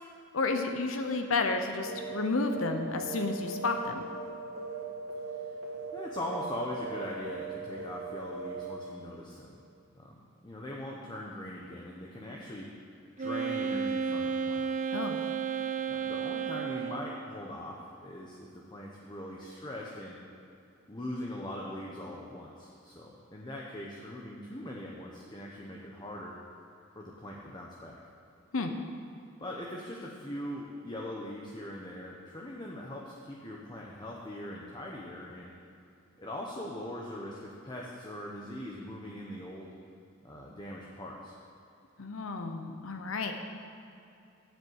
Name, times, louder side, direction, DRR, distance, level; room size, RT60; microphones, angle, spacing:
voice 1, 0.3-4.1 14.9-15.2 28.5-28.7 42.0-43.3, left 3 dB, 80° left, 5 dB, 0.8 m, -31 dB
sound 1, 1.9-2.1 2.4-2.7 2.9-4.3 4.6-4.8 5.1-5.4 5.6-5.9 6.2-6.4 6.7-7.0 7.2-7.5 7.8-8.1 8.3-8.6, right 3 dB, 80° right, 2.2 m, -39 dB
voice 2, 5.9-9.6 9.9-12.7 13.2-14.7 15.9-20.2 20.9-26.4 26.9-28.0 29.4-35.5 36.2-39.7 40.2-41.3, left 1 dB, 20° left, -2 dB, 0.9 m, -41 dB
Wind instrument woodwind instrument, 13.2-17.2, right 6 dB, 35° right, 0.4 m, -32 dB
7.8 x 7.3 x 8.0 m, 2.7 s
head